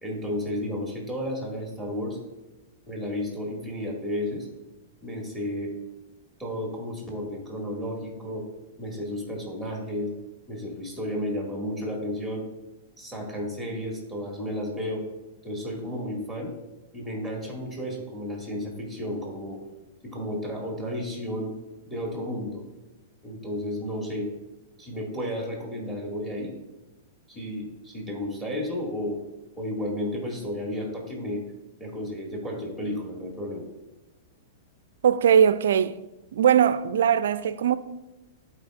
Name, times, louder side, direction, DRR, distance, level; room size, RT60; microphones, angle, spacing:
voice 1, 0.0-2.2 2.9-4.5 5.0-5.7 6.4-8.4 8.8-10.1 10.5-12.4 13.0-15.0 15.4-16.5 16.9-19.6 20.0-21.5 21.8-22.6 23.2-24.3 24.8-26.5 27.3-29.2 29.6-31.4 31.8-33.6, left 1 dB, 5° left, 2.1 m, -32 dB
voice 2, 35.0-36.0 36.3-37.8, right 8 dB, 65° right, 0.3 m, -20 dB
11.5 x 4.5 x 2.4 m
figure-of-eight pair, 105°, 0 cm